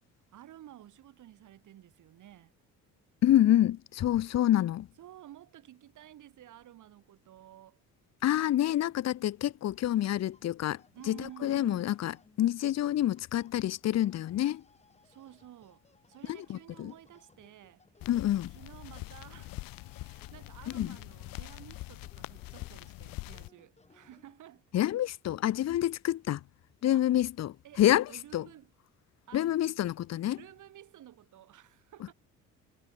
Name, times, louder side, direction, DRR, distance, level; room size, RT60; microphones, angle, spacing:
voice 1, 0.3-2.5 5.0-7.8 10.9-11.8 15.0-17.8 18.5-19.6 19.9-24.6 26.9-27.1 27.6-28.7 29.3-29.6 30.3-32.1, right 12 dB, 65° right, 5.4 m, -53 dB
voice 2, 3.2-4.9 8.2-10.8 11.1-14.6 16.3-16.9 18.1-18.5 20.7-20.9 24.7-26.4 26.8-28.4 29.3-30.4, left 12 dB, 50° left, 1.1 m, -27 dB
sound 1, 9.9-24.6, left 3 dB, 20° left, 7.9 m, -65 dB
sound 2, 18.0-23.5, left 21 dB, 85° left, 2.8 m, -44 dB
cardioid pair, 110°, 33 cm